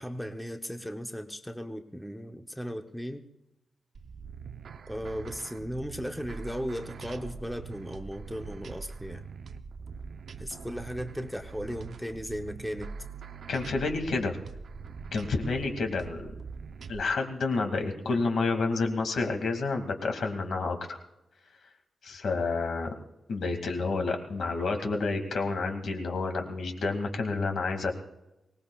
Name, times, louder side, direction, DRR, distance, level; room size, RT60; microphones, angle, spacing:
voice 1, 0.0-3.2 4.9-9.2 10.4-12.9, equal, ahead, 5 dB, 0.8 m, -36 dB
sound 1, 3.9-17.0, right 5 dB, 65° right, 0.7 m, -43 dB
voice 2, 13.5-14.4 15.1-16.3 16.9-21.0 22.0-22.9 23.3-27.9, left 3 dB, 70° left, 4 dB, 2.2 m, -29 dB
24.0 x 19.0 x 2.4 m, 0.94 s
wide cardioid pair, 150°, 0 cm